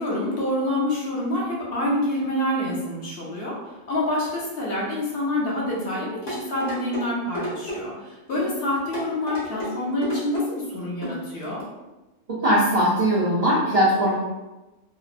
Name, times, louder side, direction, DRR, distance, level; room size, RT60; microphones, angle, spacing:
voice 1, 0.0-3.6 3.9-11.6, left 1 dB, 60° left, -5 dB, 0.8 m, -27 dB
sound 1, 6.3-7.0 7.3-7.8 8.3-8.5 8.9-9.7 10.0-10.5 11.0-11.2 11.6-11.7, equal, 75° left, 1.4 m, -31 dB
voice 2, 12.4-14.1, equal, 60° right, -7 dB, 0.4 m, -20 dB
2.9 x 2.0 x 2.4 m, 1.1 s
omnidirectional pair, 1.3 m